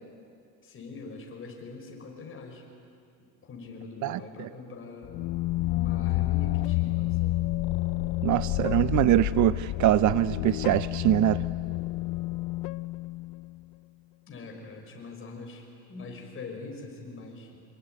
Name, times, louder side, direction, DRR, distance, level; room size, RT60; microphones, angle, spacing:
voice 1, 0.6-2.6 3.2-5.2 5.7-7.4 14.3-17.6, left 3 dB, 35° left, 2 dB, 5.7 m, -43 dB
voice 2, 4.0-4.5 8.2-11.4, right 14 dB, 50° right, 15 dB, 0.6 m, -23 dB
sound 1, 5.0-13.6, left 18 dB, 60° left, 0.6 m, -29 dB
26.5 x 22.0 x 9.4 m, 2.4 s
cardioid pair, 130°, 38 cm